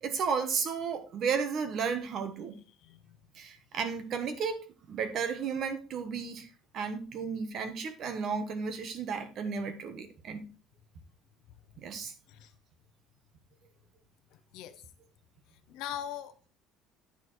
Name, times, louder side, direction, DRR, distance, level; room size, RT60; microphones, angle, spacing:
voice 1, 0.0-2.6 3.3-4.6 4.9-6.5 6.7-10.5 11.8-12.1, right 6 dB, 40° right, 1.2 m, -33 dB
voice 2, 2.8-3.2 12.3-12.5 14.3-14.8 15.7-16.4, left 10 dB, 65° left, 0.7 m, -41 dB
9.5 x 4.3 x 4.5 m
cardioid pair, 175°, 0 cm